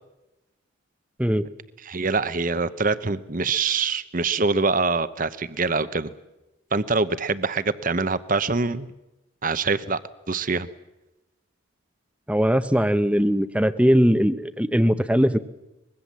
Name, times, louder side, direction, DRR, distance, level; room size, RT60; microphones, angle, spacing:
voice 1, 1.8-6.1 6.7-8.9 9.4-10.0 10.3-10.7, right 4 dB, 40° right, 14 dB, 0.9 m, -24 dB
voice 2, 12.3-15.4, equal, 5° right, 12 dB, 0.8 m, -20 dB
24.5 x 21.5 x 7.5 m, 0.99 s
head